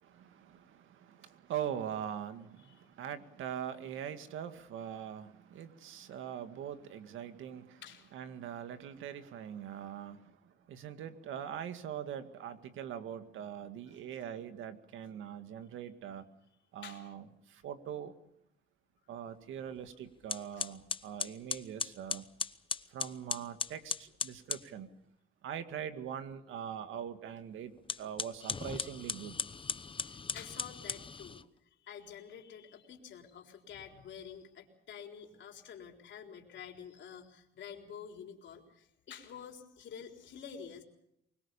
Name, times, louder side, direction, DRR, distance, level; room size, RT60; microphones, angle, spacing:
voice 1, 0.0-7.8 8.1-16.3 16.7-18.2 19.1-22.3 22.9-24.9 25.4-29.4, right 9 dB, 85° right, 9 dB, 2.0 m, -42 dB
voice 2, 7.8-8.2 13.9-14.0 16.8-17.1 20.5-20.6 30.0-40.8, left 8 dB, 70° left, 3 dB, 4.0 m, -49 dB
sound 1, 19.8-19.9 20.3-24.7 27.8-31.4, left 5 dB, 25° left, 0.9 m, -38 dB
24.0 x 21.0 x 6.9 m, 0.76 s
cardioid pair, 90°, 20 cm